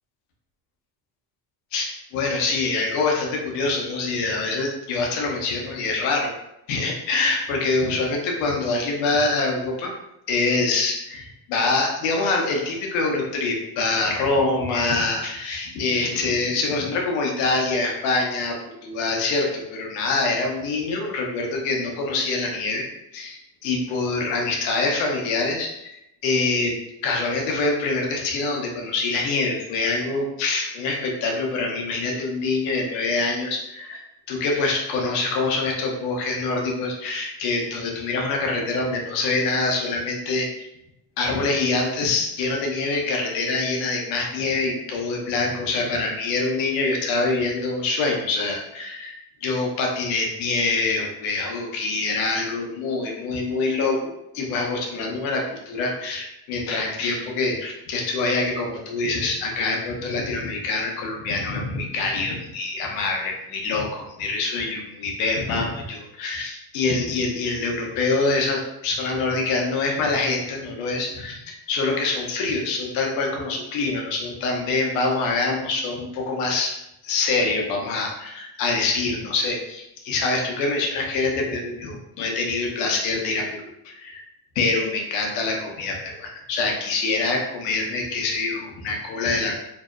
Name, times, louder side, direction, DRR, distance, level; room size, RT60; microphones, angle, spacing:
voice 1, 1.7-6.3 6.7-9.9 10.3-18.6 18.8-22.9 23.1-26.8 27.0-34.0 34.3-40.7 41.2-49.1 49.4-76.8 77.0-84.2 84.6-89.6, left 3 dB, 90° left, 0 dB, 0.6 m, -25 dB
2.7 x 2.0 x 2.3 m, 0.84 s
supercardioid pair, 75°, 46 cm